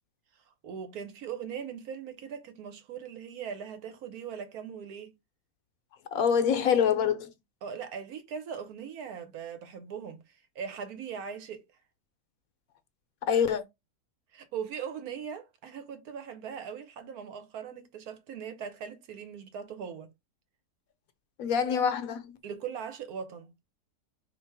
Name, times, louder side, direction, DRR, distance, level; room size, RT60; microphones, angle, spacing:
voice 1, 0.4-5.1 7.6-11.6 14.3-20.1 22.4-23.5, right 7 dB, 70° right, 1.2 m, -40 dB
voice 2, 6.1-7.3 13.3-13.6 21.4-22.4, left 7 dB, 70° left, 1.0 m, -25 dB
3.2 x 2.9 x 4.6 m
omnidirectional pair, 1.7 m